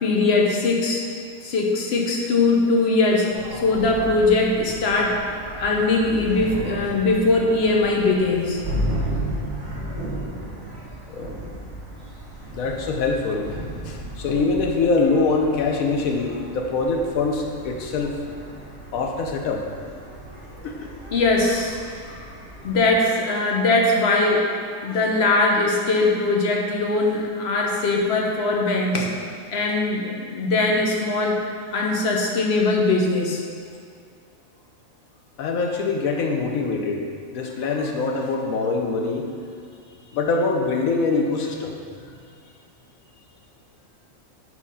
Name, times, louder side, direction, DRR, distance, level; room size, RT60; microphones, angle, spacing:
voice 1, 0.0-1.1 1.4-5.2 5.6-8.6 21.1-21.8 22.1-22.2 22.6-24.5 24.8-29.1 29.5-31.4 31.7-33.4, left 3 dB, 55° left, 0 dB, 0.9 m, -21 dB
sound 1, 3.3-23.0, right 1 dB, 15° right, 1.3 m, -34 dB
voice 2, 12.5-13.5 13.8-18.2 18.9-19.6 20.6-20.9 35.4-37.1 37.3-39.3 40.1-41.8, left 3 dB, 85° left, 2 dB, 1.1 m, -24 dB
4.6 x 4.3 x 5.5 m, 2.2 s
omnidirectional pair, 1.4 m